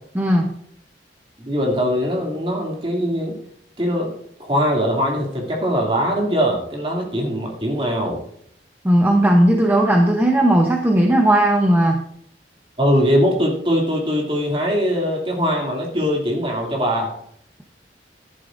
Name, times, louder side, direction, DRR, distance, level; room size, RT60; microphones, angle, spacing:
voice 1, 0.1-0.5 8.8-12.0, right 1 dB, 10° right, 1 dB, 0.9 m, -16 dB
voice 2, 1.4-3.4 3.8-4.1 4.4-8.2 12.8-17.1, equal, 30° right, -1 dB, 2.6 m, -21 dB
13.0 x 11.5 x 2.6 m, 0.66 s
head